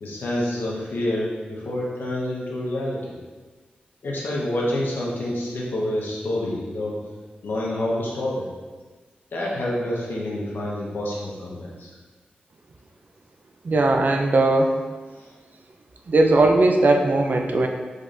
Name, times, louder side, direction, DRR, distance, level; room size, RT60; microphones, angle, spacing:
voice 1, 0.0-3.0 4.0-7.0 7.4-8.5 9.3-11.9 15.2-15.3, left 1 dB, 80° left, -4 dB, 1.1 m, -27 dB
voice 2, 13.6-14.8 16.1-17.7, right 2 dB, 60° right, 3 dB, 0.5 m, -18 dB
5.1 x 3.8 x 2.6 m, 1.4 s
cardioid pair, 70°, 3 cm